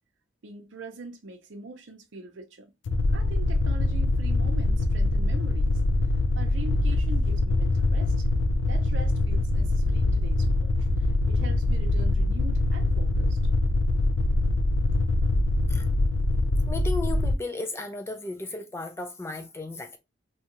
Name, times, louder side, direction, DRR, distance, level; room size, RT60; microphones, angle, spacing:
voice 1, 0.4-2.7 3.1-5.8 6.3-8.3 8.7-10.9 11.3-13.4, right 3 dB, 80° right, 0.6 m, -42 dB
sound 1, 2.8-17.3, left 2 dB, 75° left, 0.4 m, -24 dB
voice 2, 16.7-20.0, left 2 dB, 15° left, 0.4 m, -35 dB
2.8 x 2.3 x 2.9 m
head